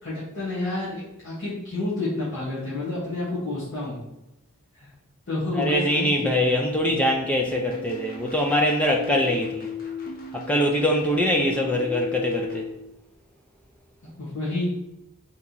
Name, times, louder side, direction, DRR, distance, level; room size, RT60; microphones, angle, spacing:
voice 1, 0.0-4.0 4.8-4.9 5.3-6.7 14.2-14.7, left 2 dB, 60° left, -10 dB, 1.3 m, -29 dB
voice 2, 5.6-9.7 10.3-12.7, left 1 dB, 5° left, 0 dB, 0.3 m, -23 dB
sound 1, 7.5-12.7, left 3 dB, 40° left, 0.6 m, -36 dB
3.5 x 2.9 x 3.9 m, 0.90 s
head